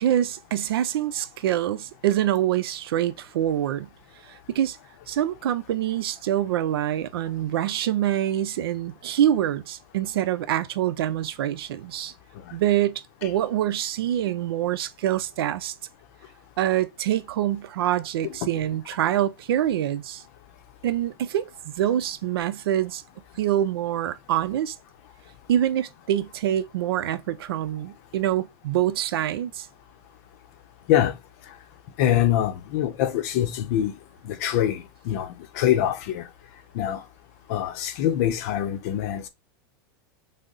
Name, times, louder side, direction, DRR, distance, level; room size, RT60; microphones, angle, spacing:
voice 1, 0.0-3.9 4.3-4.8 5.1-12.1 12.5-15.7 16.6-20.2 20.8-23.0 23.4-24.7 25.5-29.7, right 11 dB, 80° right, 0.6 m, -25 dB
voice 2, 32.0-33.9 34.2-36.3 36.7-37.0 37.5-39.3, left 11 dB, 40° left, 0.7 m, -24 dB
6.4 x 2.1 x 3.9 m
supercardioid pair, 180°, 12 cm